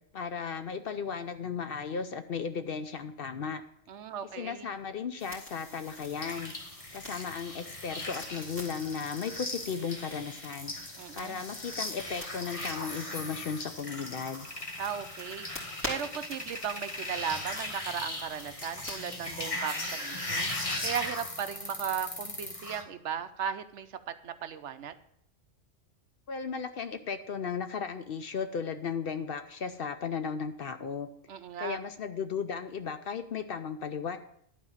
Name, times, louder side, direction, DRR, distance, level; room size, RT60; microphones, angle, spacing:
voice 1, 0.1-3.6 4.3-6.5 6.9-10.7 11.1-14.5 26.3-31.1 31.6-34.2, left 6 dB, 60° left, 9 dB, 0.7 m, -35 dB
voice 2, 3.9-4.7 11.0-11.4 14.8-20.5 20.8-24.9 31.3-31.8, right 8 dB, 70° right, 10 dB, 0.9 m, -36 dB
sound 1, 5.2-20.7, left 1 dB, 10° left, 3.1 m, -47 dB
sound 2, 6.2-22.8, left 1 dB, 30° left, 1.3 m, -38 dB
11.5 x 4.5 x 7.2 m, 0.71 s
omnidirectional pair, 1.3 m